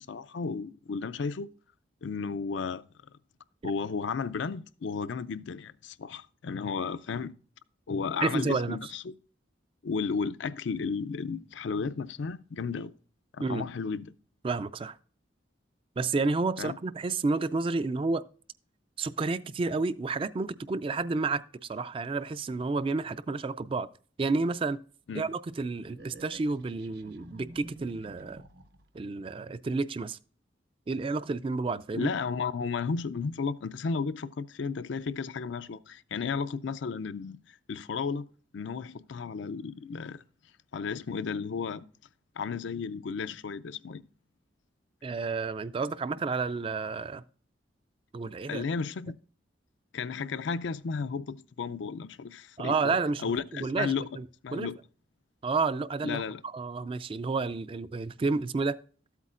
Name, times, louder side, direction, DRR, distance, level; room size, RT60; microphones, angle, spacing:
voice 1, 0.0-1.5 2.0-2.8 3.6-7.3 7.9-9.1 9.8-12.9 13.3-14.1 16.6-16.8 25.1-25.3 31.9-38.3 38.5-40.2 40.7-41.8 42.4-44.0 48.5-49.2 49.9-54.1 54.4-54.8 56.0-56.4, left 5 dB, 70° left, 0.4 m, -33 dB
voice 2, 8.2-8.8 13.4-13.6 14.4-15.0 16.0-18.3 19.0-23.9 24.2-24.8 25.1-28.4 28.9-30.2 30.9-32.1 45.0-47.2 48.1-48.6 52.6-54.3 54.5-54.7 55.4-58.8, right 3 dB, 30° right, 0.3 m, -30 dB
sound 1, 25.9-29.0, right 1 dB, 60° right, 0.8 m, -50 dB
13.0 x 8.2 x 2.5 m
head